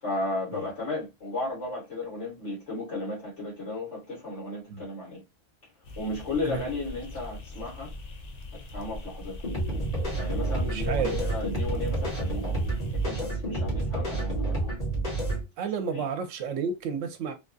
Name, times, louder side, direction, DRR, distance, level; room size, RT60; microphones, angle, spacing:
voice 1, 0.0-5.2 6.0-7.9 8.7-9.4 10.1-12.5 12.9-14.7 15.9-16.1, left 2 dB, 65° left, 1.7 m, -34 dB
sound 1, 5.8-13.1, left 1 dB, 50° left, 0.5 m, -41 dB
sound 2, 9.4-15.4, right 2 dB, 30° left, 1.6 m, -29 dB
voice 2, 10.5-11.2 15.6-17.3, right 6 dB, 85° right, 1.0 m, -31 dB
3.3 x 2.3 x 2.6 m
omnidirectional pair, 1.3 m